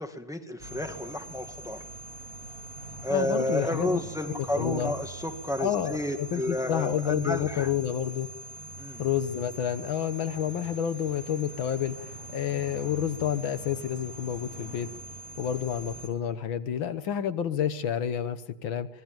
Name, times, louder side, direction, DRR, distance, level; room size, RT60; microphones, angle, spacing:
voice 1, 0.0-1.8 3.0-7.7 8.8-9.1, left 1 dB, ahead, 6 dB, 1.9 m, -31 dB
sound 1, 0.6-16.1, right 2 dB, 40° right, 3.5 m, -43 dB
voice 2, 3.1-4.0 4.3-4.9 5.6-8.3 9.0-14.9 15.4-18.9, left 9 dB, 75° left, 12 dB, 1.9 m, -29 dB
25.5 x 20.0 x 9.1 m, 0.89 s
omnidirectional pair, 2.2 m